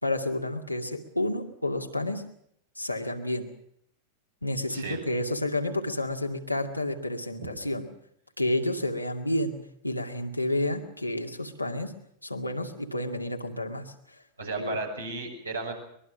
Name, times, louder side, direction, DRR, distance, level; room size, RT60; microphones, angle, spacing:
voice 1, 0.0-2.2 2.8-3.5 4.4-7.9 8.4-9.5 9.8-11.9 12.2-13.9 14.6-14.8, left 1 dB, 90° left, 3 dB, 2.2 m, -30 dB
voice 2, 4.7-5.0 7.4-7.5 14.4-15.7, right 3 dB, 80° right, 0 dB, 6.8 m, -34 dB
23.5 x 21.5 x 6.2 m, 0.71 s
figure-of-eight pair, 90°, 0 cm